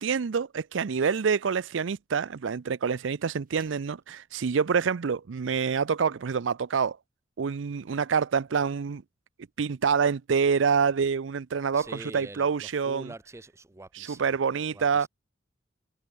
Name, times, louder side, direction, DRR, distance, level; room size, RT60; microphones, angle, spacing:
voice 1, 0.0-7.0 7.4-9.0 9.6-13.1 13.9-15.1, right 6 dB, 90° right, 0.5 m, -27 dB
sound 1, 3.4-4.0, right 6 dB, 50° right, 4.7 m, -56 dB
voice 2, 11.7-14.4 14.7-15.1, right 2 dB, 15° right, 0.6 m, -45 dB
head